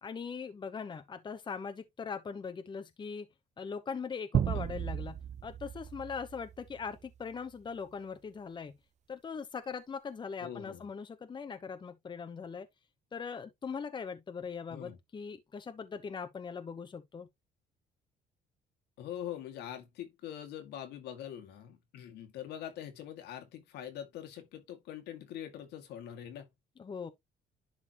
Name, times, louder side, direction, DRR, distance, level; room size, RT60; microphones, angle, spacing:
voice 1, 0.0-3.3 3.6-8.7 9.1-12.7 13.1-17.3 26.8-27.1, left 5 dB, 25° left, 0.9 m, -40 dB
sound 1, 4.3-7.2, right 9 dB, 45° right, 0.6 m, -34 dB
voice 2, 10.4-10.9 14.7-15.0 19.0-26.5, left 10 dB, 80° left, 2.1 m, -43 dB
11.0 x 4.0 x 3.0 m
cardioid pair, 110°, 17 cm